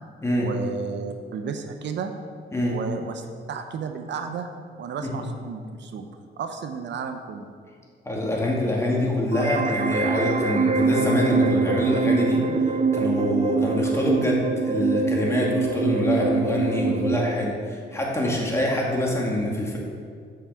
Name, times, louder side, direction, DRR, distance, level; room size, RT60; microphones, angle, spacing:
voice 1, 0.4-2.1 2.7-4.5 4.8-6.1 6.4-7.5, right 6 dB, 65° right, 6 dB, 0.7 m, -33 dB
voice 2, 8.0-19.8, left 1 dB, 15° left, -3 dB, 2.3 m, -25 dB
sound 1, 9.3-17.3, right 4 dB, 35° right, 0.7 m, -24 dB
7.9 x 5.9 x 6.9 m, 2.1 s
cardioid pair, 90°, 20 cm